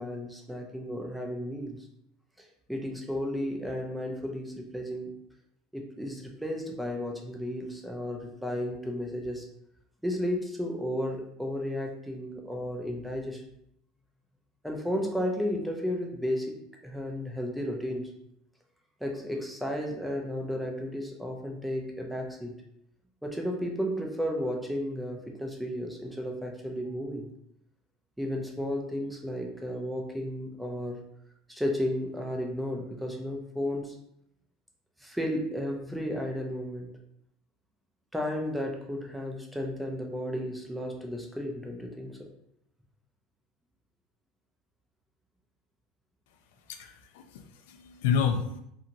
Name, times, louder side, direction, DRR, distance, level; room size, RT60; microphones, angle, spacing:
voice 1, 0.0-1.8 2.4-5.1 5.7-9.5 10.0-13.4 14.6-18.1 19.0-22.6 23.2-27.3 28.2-31.0 31.5-34.0 35.0-37.0 38.1-42.3, equal, ahead, 1 dB, 0.4 m, -33 dB
voice 2, 46.7-48.6, left 7 dB, 80° left, 7 dB, 0.3 m, -30 dB
2.8 x 2.7 x 2.5 m, 0.75 s
supercardioid pair, 170°, 0 cm